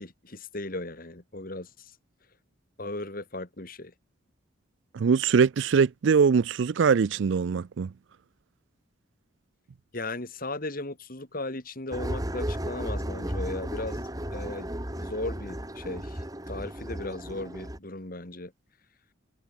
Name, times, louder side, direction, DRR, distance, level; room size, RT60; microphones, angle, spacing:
voice 1, 0.0-1.9 2.8-3.9 9.9-18.5, left 2 dB, 45° left, 2.4 m, -37 dB
voice 2, 4.9-7.9, right 6 dB, 65° right, 0.4 m, -22 dB
sound 1, 11.9-17.8, equal, 20° right, 2.7 m, -34 dB
head